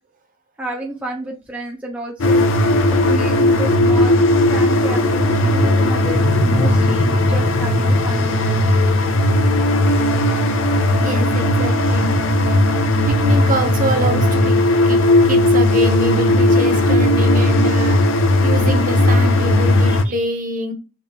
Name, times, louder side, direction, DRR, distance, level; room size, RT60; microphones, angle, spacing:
voice 1, 0.6-2.5 3.0-4.2 4.5-8.6 19.8-20.1, right 1 dB, 5° right, 0.5 m, -31 dB
sound 1, 2.2-20.0, left 1 dB, 60° left, 0.5 m, -16 dB
voice 2, 11.0-12.3 13.1-20.7, equal, 35° right, 0.8 m, -25 dB
4.3 x 2.3 x 3.4 m
head